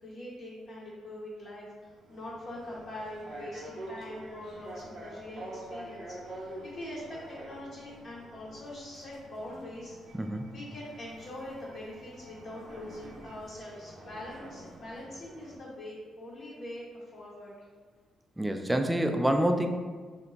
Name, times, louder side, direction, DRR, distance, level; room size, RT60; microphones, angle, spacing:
voice 1, 0.0-10.1 10.5-17.5, left 1 dB, 50° left, -7 dB, 0.7 m, -43 dB
sound 1, 1.8-15.6, right 1 dB, 50° right, 0.7 m, -47 dB
voice 2, 18.4-19.7, right 1 dB, 10° right, 4 dB, 0.3 m, -27 dB
2.9 x 2.2 x 3.8 m, 1.5 s
cardioid pair, 90°, 0 cm